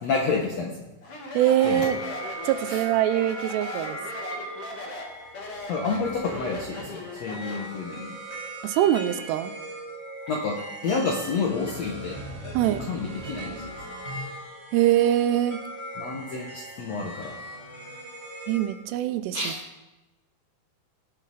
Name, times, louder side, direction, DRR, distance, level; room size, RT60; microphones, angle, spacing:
voice 1, 0.0-0.9 1.6-1.9 2.7-2.8 5.7-8.1 10.3-12.2 12.7-13.8 16.0-17.3 19.3-19.6, left 4 dB, 75° left, 0 dB, 1.5 m, -29 dB
Speech, 1.0-7.8, left 2 dB, 50° left, 1.8 m, -38 dB
voice 2, 1.3-2.0 2.4-4.0 8.6-9.5 12.5-12.9 14.7-15.6 18.5-19.4, right 12 dB, 85° right, 11 dB, 2.8 m, -23 dB
sound 1, 1.5-18.7, right 1 dB, 5° left, 4.1 m, -39 dB
19.5 x 8.3 x 4.2 m, 1.1 s
omnidirectional pair, 4.8 m